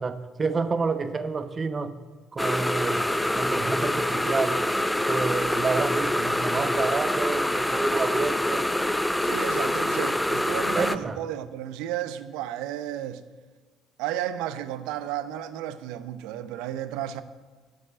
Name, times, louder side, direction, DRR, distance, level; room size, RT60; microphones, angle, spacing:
voice 1, 0.0-2.0 2.3-3.1 3.4-4.7 5.1-8.7 10.7-11.2, right 4 dB, 35° right, 0.9 m, -29 dB
sound 1, 2.4-11.0, left 1 dB, 5° left, 0.6 m, -25 dB
voice 2, 9.2-13.2 14.0-17.2, right 11 dB, 75° right, 0.6 m, -33 dB
7.8 x 7.7 x 8.6 m
hypercardioid pair, 50°, 0 cm